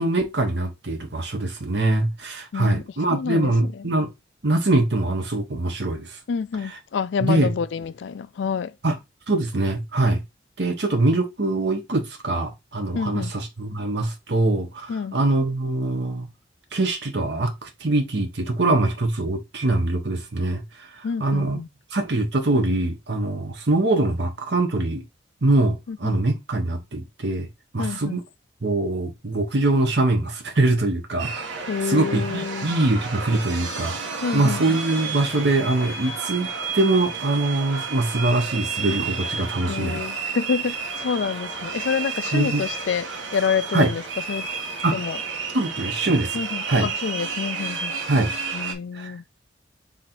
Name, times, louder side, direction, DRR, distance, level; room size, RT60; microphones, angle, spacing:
voice 1, 0.0-4.1 4.4-6.2 7.2-7.5 8.8-9.0 9.3-10.2 10.6-16.3 16.7-21.6 21.9-25.0 25.4-27.5 27.7-28.2 28.6-31.3 31.8-34.0 34.3-36.5 36.7-40.0 42.3-42.6 43.7-43.9 44.8-45.0 45.5-46.4 46.7-46.9 48.1-48.3 48.9-49.1, right 2 dB, 60° right, 1.1 m, -23 dB
voice 2, 2.5-2.8 3.1-3.9 6.3-8.7 12.9-13.3 14.9-15.2 21.0-21.7 25.9-26.2 27.8-28.2 31.7-32.7 34.2-34.8 39.7-44.0 44.3-44.5 44.9-45.2 46.3-47.9 48.5-49.2, left 6 dB, 70° left, 0.4 m, -28 dB
sound 1, 31.2-48.7, right 5 dB, 90° right, 1.1 m, -31 dB
3.9 x 3.1 x 4.4 m
head